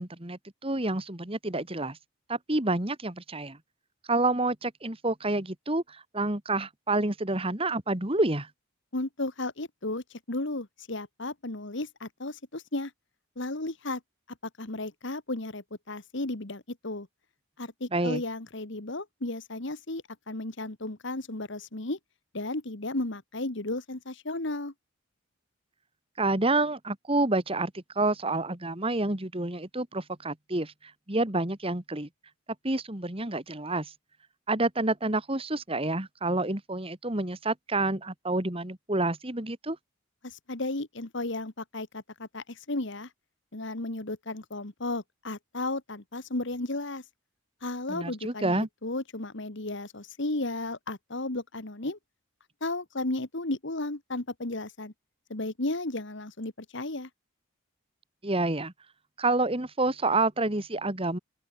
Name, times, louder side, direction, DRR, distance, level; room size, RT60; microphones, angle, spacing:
voice 1, 0.0-2.0 2.3-3.6 4.1-8.5 17.9-18.2 26.2-30.7 31.1-32.1 32.6-33.9 34.5-39.8 47.9-48.7 58.2-58.7 59.2-61.2, right 2 dB, 25° right, 1.9 m, -28 dB
voice 2, 8.9-12.9 13.4-14.0 14.6-17.1 17.6-22.0 22.3-24.7 40.2-43.1 43.5-47.0 47.6-52.0 52.6-54.9 55.3-57.1, left 2 dB, 55° left, 1.8 m, -34 dB
open air
head